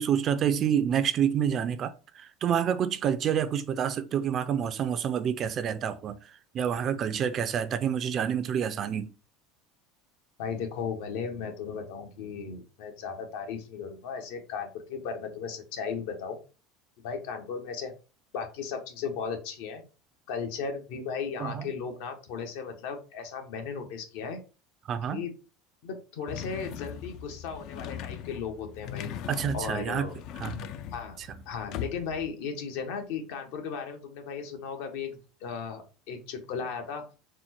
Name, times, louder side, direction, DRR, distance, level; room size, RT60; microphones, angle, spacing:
voice 1, 0.0-6.2 6.5-9.1 21.4-21.7 24.9-25.3 29.3-30.1 30.4-30.7 31.2-31.4, right 8 dB, 35° right, 0.4 m, -28 dB
voice 2, 10.4-16.4 17.0-17.9 18.3-19.8 20.3-24.4 25.1-25.3 25.8-29.1 29.5-30.2 30.9-37.0, left 6 dB, 75° left, 1.0 m, -36 dB
sound 1, 26.3-32.3, left 9 dB, 50° left, 0.4 m, -40 dB
4.3 x 2.1 x 4.2 m
supercardioid pair, 140°, 0 cm